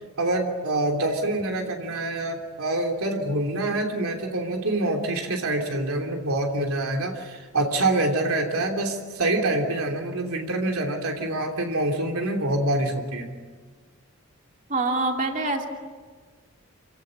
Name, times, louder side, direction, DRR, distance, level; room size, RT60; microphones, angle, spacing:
voice 1, 0.2-13.3, right 2 dB, 80° right, 2 dB, 3.1 m, -26 dB
voice 2, 14.7-15.7, right 2 dB, 35° right, 2 dB, 2.7 m, -25 dB
27.5 x 17.0 x 9.7 m, 1.5 s
head